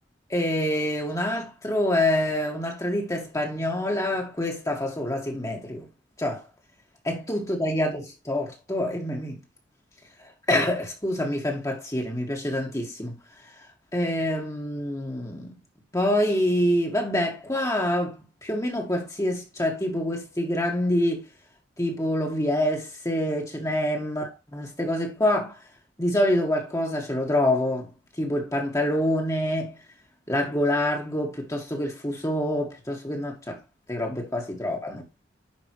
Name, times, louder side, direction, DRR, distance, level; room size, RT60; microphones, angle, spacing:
voice 1, 0.3-5.9 6.2-6.5 7.0-9.4 10.5-13.2 13.9-15.6 15.9-18.1 18.4-21.2 21.8-25.6 26.0-27.9 28.2-29.7 30.3-33.6 33.9-35.0, left 1 dB, 20° left, 1.9 m, -26 dB
10.0 x 5.3 x 3.1 m
head